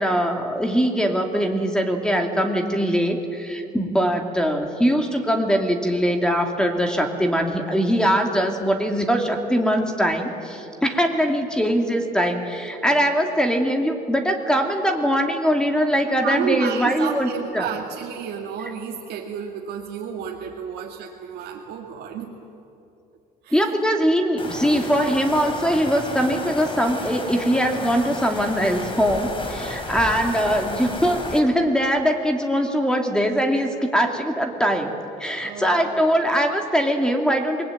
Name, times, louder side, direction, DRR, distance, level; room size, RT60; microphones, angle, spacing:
voice 1, 0.0-17.7 23.5-34.9 35.2-37.6, equal, 5° left, 4 dB, 2.7 m, -22 dB
voice 2, 16.2-22.3 23.4-23.9 35.4-36.0, right 8 dB, 80° right, -1 dB, 2.2 m, -31 dB
sound 1, 24.4-31.4, left 2 dB, 30° left, 4.0 m, -32 dB
27.5 x 20.5 x 9.2 m, 2.7 s
cardioid pair, 110°, 17 cm